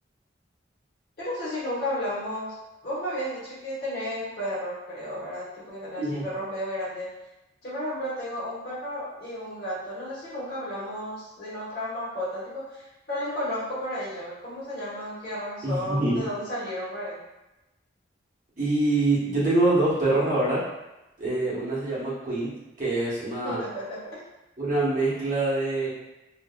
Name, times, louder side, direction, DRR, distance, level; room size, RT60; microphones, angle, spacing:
voice 1, 1.2-2.5 2.8-7.1 7.6-17.2 23.4-24.2, equal, 50° left, -10 dB, 1.2 m, -33 dB
voice 2, 5.9-6.3 15.6-16.3 18.6-20.6 21.2-22.5 22.8-23.6 24.6-25.9, right 2 dB, 45° right, -8 dB, 0.9 m, -25 dB
2.6 x 2.4 x 2.2 m, 0.99 s
head